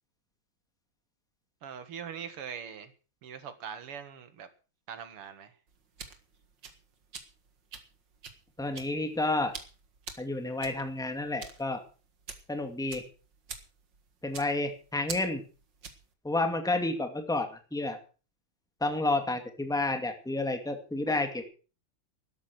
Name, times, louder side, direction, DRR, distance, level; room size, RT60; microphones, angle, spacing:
voice 1, 1.6-2.9 3.2-4.5 4.9-5.5, right 7 dB, 85° right, 10 dB, 2.5 m, -42 dB
sound 1, 5.7-16.1, right 6 dB, 55° right, 2.4 m, -46 dB
voice 2, 8.6-9.5 10.2-11.8 12.5-13.0 14.2-15.4 16.2-18.0 18.8-21.5, left 2 dB, ahead, 6 dB, 2.0 m, -30 dB
12.5 x 12.0 x 6.1 m, 0.37 s
omnidirectional pair, 2.4 m